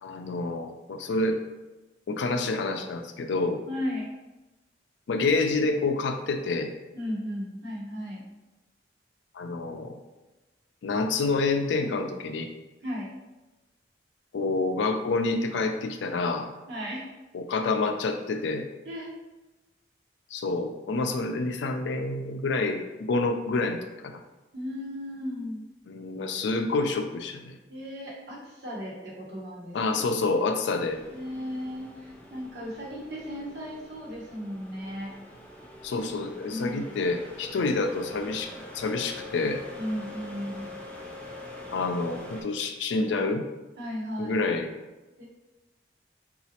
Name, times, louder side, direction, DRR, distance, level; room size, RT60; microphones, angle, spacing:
voice 1, 0.0-1.4 2.1-3.6 5.1-6.7 9.3-10.0 10.8-12.5 14.3-16.5 17.3-18.7 20.3-24.2 25.9-27.6 29.7-31.0 35.8-39.6 41.7-43.4 44.2-44.7, left 3 dB, 90° left, 5 dB, 0.4 m, -28 dB
voice 2, 3.7-4.1 6.9-8.2 12.8-13.1 16.7-17.0 18.8-19.1 24.5-25.6 27.7-29.8 31.1-35.1 36.5-37.0 39.8-40.7 43.8-44.4 45.2-45.3, equal, 70° right, -5 dB, 1.1 m, -35 dB
sound 1, 30.8-42.4, left 2 dB, 5° left, 0.3 m, -44 dB
4.0 x 2.4 x 2.8 m, 1.1 s
head